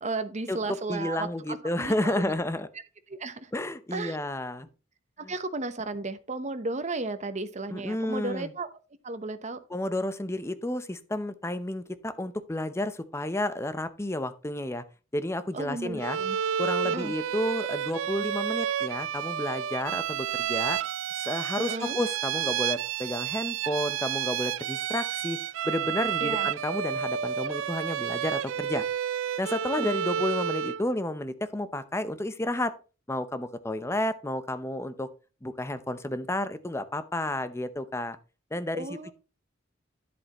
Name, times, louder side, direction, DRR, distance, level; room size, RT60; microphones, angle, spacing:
voice 1, 0.0-2.3 3.1-3.5 3.9-4.2 5.3-8.7 9.0-9.6 15.5-16.4 16.8-17.1 21.6-22.0 26.2-26.5 29.8-29.9 38.7-39.1, right 3 dB, 35° right, 0.9 m, -34 dB
voice 2, 0.9-2.7 3.5-4.7 5.2-5.3 7.7-8.5 9.7-14.8 15.1-16.2 16.6-20.8 21.1-25.4 25.6-28.8 29.4-32.7 33.1-35.1 35.4-38.2 38.5-39.1, left 1 dB, 15° left, 0.7 m, -31 dB
Bowed string instrument, 16.0-30.9, right 9 dB, 80° right, 0.3 m, -30 dB
10.5 x 7.9 x 3.0 m
head